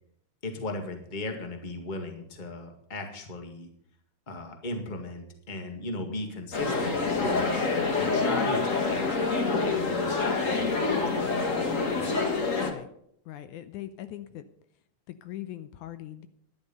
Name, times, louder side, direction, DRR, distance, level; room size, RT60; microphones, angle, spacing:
voice 1, 0.4-3.7 4.3-7.6 8.0-12.0, left 2 dB, 20° left, 4 dB, 1.4 m, -37 dB
sound 1, 6.5-12.7, left 4 dB, 40° left, 1.2 m, -27 dB
voice 2, 13.3-14.4 15.1-16.3, left 13 dB, 80° left, 11 dB, 2.1 m, -40 dB
12.0 x 11.0 x 5.4 m, 0.68 s
omnidirectional pair, 3.6 m